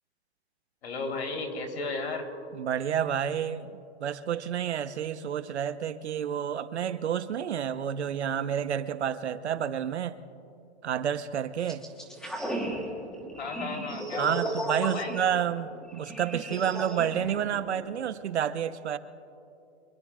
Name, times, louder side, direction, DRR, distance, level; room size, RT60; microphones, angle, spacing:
voice 1, 0.8-2.3 13.4-15.2, left 3 dB, 75° left, 3 dB, 3.8 m, -35 dB
voice 2, 2.5-10.2 10.8-11.8 14.2-19.0, right 9 dB, 85° right, 12 dB, 1.0 m, -30 dB
sound 1, 11.7-18.1, right 1 dB, ahead, 1.2 m, -35 dB
26.0 x 21.0 x 2.5 m, 2.6 s
hypercardioid pair, 165°, 33 cm